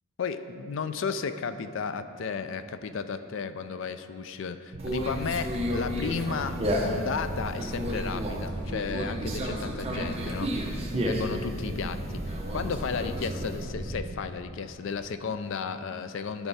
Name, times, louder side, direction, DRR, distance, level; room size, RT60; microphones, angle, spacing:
voice 1, 0.2-10.5 11.0-16.5, left 5 dB, 60° left, 11 dB, 0.4 m, -34 dB
sound 1, 4.7-14.2, right 1 dB, 60° right, 0.7 m, -37 dB
Conversation, 4.8-13.6, equal, 25° right, 0.8 m, -33 dB
12.5 x 4.7 x 4.1 m, 2.5 s
head